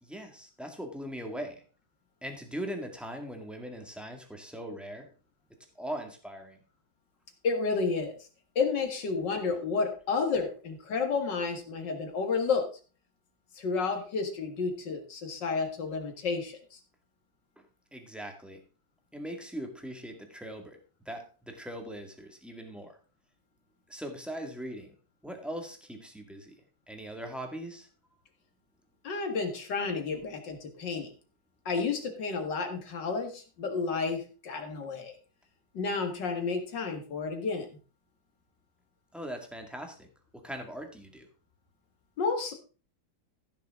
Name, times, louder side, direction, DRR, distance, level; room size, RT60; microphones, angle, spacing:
voice 1, 0.0-1.6 2.2-5.1 5.8-6.6 17.6-17.7 17.9-18.6 19.1-20.8 21.1-22.9 23.9-24.9 25.2-26.5 26.9-27.9 39.1-40.1 40.3-41.3, equal, ahead, 3 dB, 1.8 m, -40 dB
voice 2, 7.4-8.2 8.6-12.7 13.6-16.8 29.0-31.1 31.7-35.1 35.7-37.8 42.2-42.5, left 4 dB, 65° left, 5 dB, 2.5 m, -31 dB
15.0 x 6.8 x 3.7 m, 0.37 s
omnidirectional pair, 2.1 m